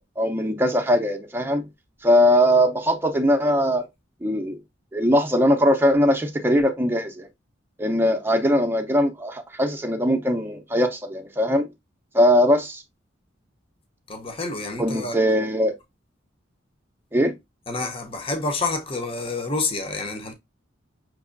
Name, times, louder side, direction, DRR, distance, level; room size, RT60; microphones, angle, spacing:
voice 1, 0.0-1.7 2.0-3.8 4.2-4.6 4.9-7.3 7.8-11.7 12.1-12.8 14.8-15.7 17.1-17.3, equal, 10° right, 0.6 m, -20 dB
voice 2, 14.1-15.2 17.7-20.3, left 3 dB, 30° left, 0.7 m, -28 dB
5.9 x 2.9 x 2.5 m
head